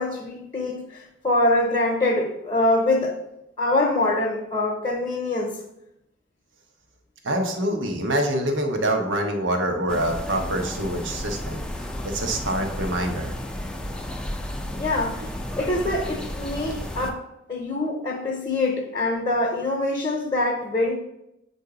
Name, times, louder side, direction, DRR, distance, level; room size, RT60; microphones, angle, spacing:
voice 1, 0.0-3.2 3.6-5.6 14.7-17.2 17.5-21.0, left 2 dB, 25° left, 0.7 m, -24 dB
voice 2, 7.2-13.4, right 1 dB, 90° right, 0.9 m, -26 dB
sound 1, 9.9-17.1, left 1 dB, 5° left, 0.4 m, -33 dB
7.8 x 2.7 x 4.8 m
head